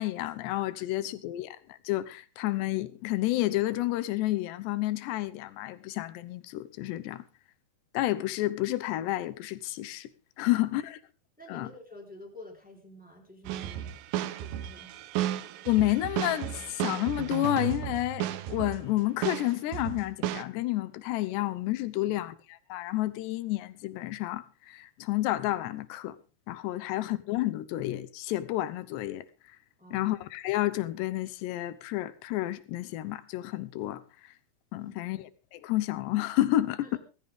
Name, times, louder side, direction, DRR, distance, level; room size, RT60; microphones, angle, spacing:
voice 1, 0.0-7.2 7.9-10.1 10.4-11.0 11.5-11.7 15.7-22.3 22.7-26.2 26.5-29.2 29.9-34.0 34.7-35.2 35.5-37.0, left 16 dB, 85° left, 3.1 m, -30 dB
voice 2, 0.8-1.1 11.4-14.0 14.4-15.1 21.9-22.2 26.8-26.9 29.8-30.1 34.8-35.2 36.8-37.0, left 1 dB, ahead, 3.3 m, -50 dB
sound 1, 13.4-18.9 19.2-20.4, right 12 dB, 75° right, 2.2 m, -34 dB
17.5 x 14.5 x 3.6 m
omnidirectional pair, 4.8 m